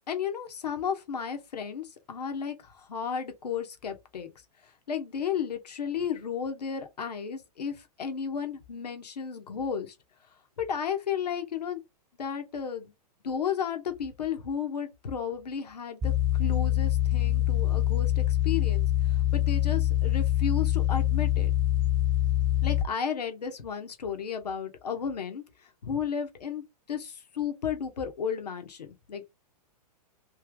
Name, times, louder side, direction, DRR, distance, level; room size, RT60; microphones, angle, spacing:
voice 1, 0.1-4.3 4.9-9.9 10.6-11.8 12.2-12.9 13.2-16.1 16.4-21.5 22.6-26.6 26.9-29.2, left 7 dB, 80° left, 1.1 m, -33 dB
sound 1, 16.0-22.8, left 13 dB, 20° right, 1.1 m, -25 dB
3.2 x 2.8 x 3.5 m
hypercardioid pair, 115°, 20 cm